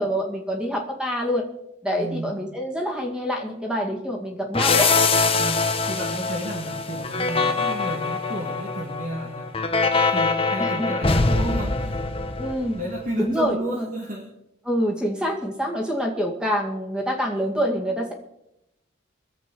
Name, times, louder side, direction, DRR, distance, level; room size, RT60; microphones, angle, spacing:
voice 1, 0.0-1.4 1.8-4.9 10.6-10.9 12.4-12.8 13.2-13.9 14.6-18.1, equal, 5° right, 0 dB, 2.2 m, -26 dB
voice 2, 1.9-2.6 5.4-9.6 9.9-12.0 12.7-14.3, right 1 dB, 40° right, 0 dB, 1.7 m, -32 dB
sound 1, 4.5-13.0, left 4 dB, 30° left, 1.1 m, -23 dB
24.0 x 8.0 x 4.6 m, 0.85 s
head